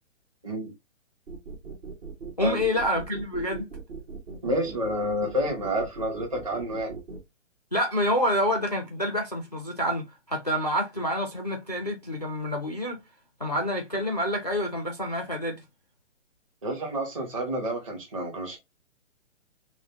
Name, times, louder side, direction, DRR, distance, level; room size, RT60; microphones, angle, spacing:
sound 1, 1.3-7.2, right 4 dB, 55° right, 1.6 m, -40 dB
voice 1, 2.4-3.7 7.7-13.0 13.4-15.6, equal, 35° left, 0.4 m, -27 dB
voice 2, 4.4-7.0 16.6-18.6, equal, 25° right, 1.2 m, -29 dB
5.8 x 2.1 x 2.7 m
hypercardioid pair, 175°, 39 cm